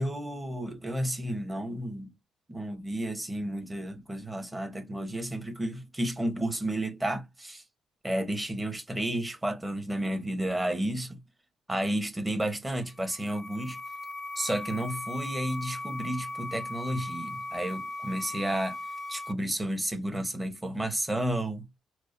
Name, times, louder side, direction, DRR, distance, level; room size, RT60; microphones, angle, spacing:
voice 1, 0.0-2.1 2.5-7.6 8.0-11.2 11.7-13.8 14.4-18.8 19.1-21.7, right 1 dB, 15° right, 1.0 m, -32 dB
sound 1, 12.8-19.3, left 2 dB, 25° left, 0.4 m, -38 dB
4.6 x 2.0 x 2.6 m
cardioid pair, 90°, 0 cm